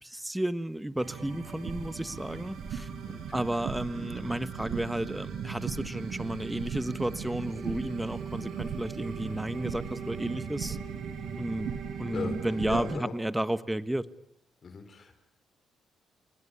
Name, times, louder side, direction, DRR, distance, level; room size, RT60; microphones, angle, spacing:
voice 1, 0.0-2.9 3.3-10.8 11.4-14.0, right 1 dB, 10° right, 15 dB, 1.4 m, -32 dB
sound 1, 1.0-12.9, right 7 dB, 70° right, 5.5 m, -37 dB
voice 2, 12.7-13.2 14.6-15.1, left 5 dB, 45° left, 7 dB, 4.3 m, -37 dB
30.0 x 20.5 x 9.8 m, 0.77 s
cardioid pair, 90°, 0 cm